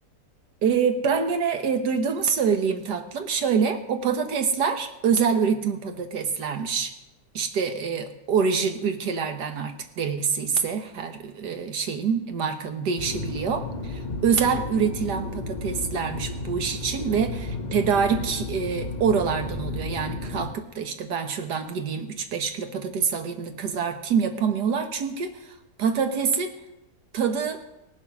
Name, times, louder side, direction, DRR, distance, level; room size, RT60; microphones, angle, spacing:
voice 1, 0.6-6.9 7.3-26.5 27.1-27.6, right 6 dB, 80° right, 6 dB, 1.7 m, -26 dB
sound 1, 13.0-20.5, left 2 dB, 35° left, 0.9 m, -33 dB
18.5 x 7.4 x 6.0 m, 0.94 s
omnidirectional pair, 1.8 m